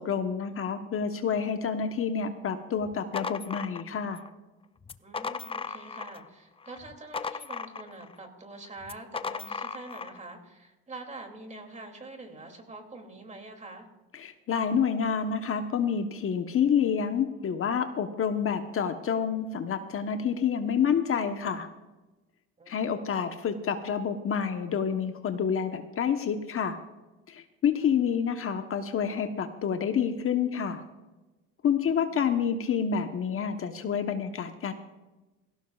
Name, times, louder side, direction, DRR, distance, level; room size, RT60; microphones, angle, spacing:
voice 1, 0.0-4.2 14.2-21.7 22.7-26.8 27.3-30.8 31.6-34.7, left 7 dB, 45° left, 7 dB, 1.1 m, -28 dB
sound 1, 2.8-4.3 4.8-6.3 6.6-8.2 8.8-10.2, left 5 dB, 20° left, 0.5 m, -37 dB
voice 2, 5.0-13.9 22.6-23.0 27.7-28.2 31.8-32.2, right 2 dB, 20° right, 4 dB, 2.7 m, -45 dB
18.5 x 16.0 x 2.4 m, 1.1 s
cardioid pair, 95°, 31 cm